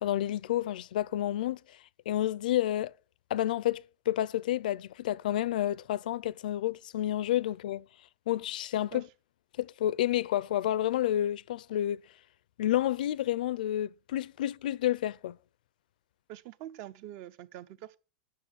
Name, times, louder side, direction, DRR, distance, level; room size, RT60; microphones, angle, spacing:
voice 1, 0.0-1.8 2.1-2.9 3.3-7.9 8.3-9.1 9.6-12.0 12.6-15.4, left 12 dB, 80° left, 0.5 m, -30 dB
voice 2, 16.3-18.0, right 13 dB, 50° right, 0.8 m, -44 dB
10.0 x 6.8 x 7.2 m
supercardioid pair, 145°, 4 cm